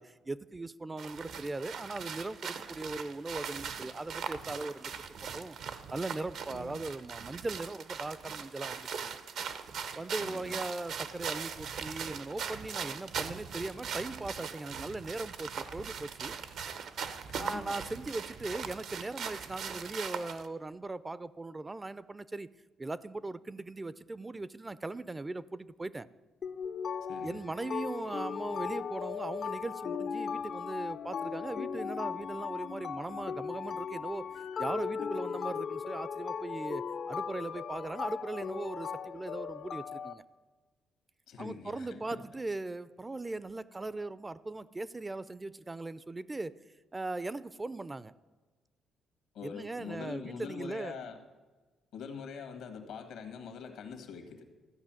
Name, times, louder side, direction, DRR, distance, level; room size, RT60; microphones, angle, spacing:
voice 1, 0.0-4.9 5.3-5.6 5.9-9.2 9.9-16.4 17.4-22.5 22.8-26.1 27.2-40.2 41.4-46.6 46.9-48.2 49.4-51.0, right 2 dB, 20° right, 17 dB, 0.4 m, -39 dB
sound 1, 1.0-20.5, right 7 dB, 75° right, 0.8 m, -40 dB
voice 2, 6.5-6.8 10.2-10.6 17.3-17.8 27.1-27.4 41.3-42.2 49.3-51.2 51.9-54.4, left 6 dB, 85° left, 7 dB, 1.7 m, -44 dB
sound 2, 26.4-40.1, left 6 dB, 60° left, 0.5 m, -37 dB
13.5 x 5.6 x 8.9 m, 1.3 s
cardioid pair, 90°, 0 cm